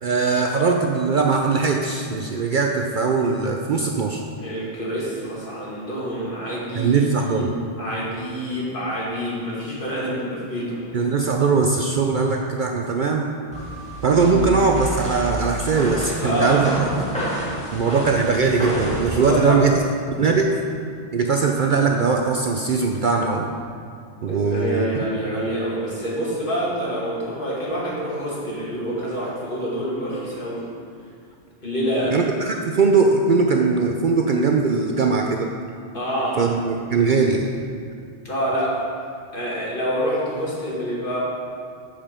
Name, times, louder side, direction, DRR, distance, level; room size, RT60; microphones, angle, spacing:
voice 1, 0.0-4.2 6.7-7.5 10.9-13.3 14.0-17.1 17.7-19.8 20.2-20.6 21.1-23.5 24.2-25.0 32.1-35.5 36.4-37.5, right 4 dB, 55° right, 2 dB, 0.6 m, -20 dB
voice 2, 4.4-10.8 14.1-14.5 16.2-16.7 19.2-19.6 24.3-30.6 31.6-32.2 35.9-36.5 38.2-38.8 39.3-41.2, equal, 50° left, -6 dB, 2.3 m, -27 dB
sound 1, 13.5-19.3, equal, 5° left, 1.9 m, -29 dB
9.0 x 5.2 x 6.6 m, 2.3 s
omnidirectional pair, 1.2 m